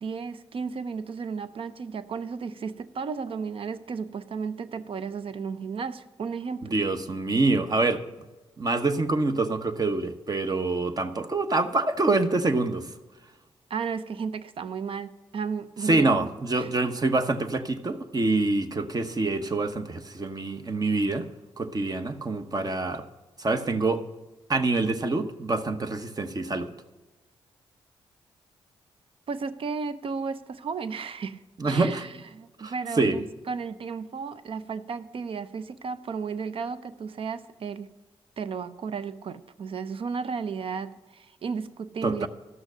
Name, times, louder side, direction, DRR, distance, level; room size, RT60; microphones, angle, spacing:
voice 1, 0.0-6.7 13.7-16.3 16.6-16.7 29.3-31.4 31.7-37.9 38.4-42.3, right 5 dB, 60° right, 13 dB, 0.7 m, -34 dB
voice 2, 6.7-8.0 8.6-12.9 15.8-21.3 21.6-23.1 23.4-24.0 24.5-26.7 31.6-32.1 32.6-33.2 42.0-42.3, right 3 dB, 35° right, 9 dB, 1.0 m, -26 dB
12.5 x 6.3 x 6.2 m, 1.1 s
supercardioid pair, 50°, 11 cm